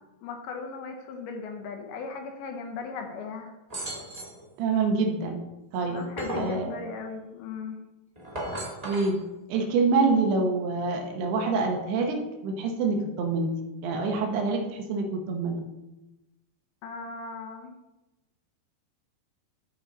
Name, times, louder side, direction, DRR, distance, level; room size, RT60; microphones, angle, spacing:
voice 1, 0.2-3.5 5.8-7.8 16.8-17.7, left 4 dB, 80° left, 4 dB, 2.7 m, -37 dB
sound 1, 3.7-4.4 5.7-6.6 8.2-9.1, right 1 dB, 30° right, 0.6 m, -35 dB
voice 2, 4.6-5.4 5.7-6.0 6.3-6.8 8.8-9.2 9.5-12.2 12.4-13.5 13.8-15.6, right 4 dB, 85° right, 2 dB, 3.0 m, -26 dB
13.0 x 4.7 x 3.9 m, 1.0 s
omnidirectional pair, 4.5 m